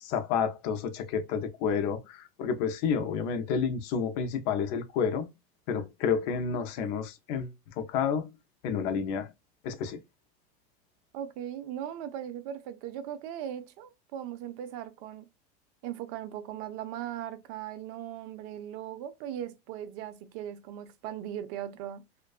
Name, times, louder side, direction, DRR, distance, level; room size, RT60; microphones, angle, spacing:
voice 1, 0.0-5.3 5.7-7.5 7.8-8.3 8.6-9.3 9.6-10.0, left 6 dB, 65° left, 0.5 m, -30 dB
voice 2, 11.1-15.3 15.8-22.0, right 10 dB, 70° right, 0.4 m, -38 dB
2.5 x 2.2 x 2.3 m
cardioid pair, 155°, 20 cm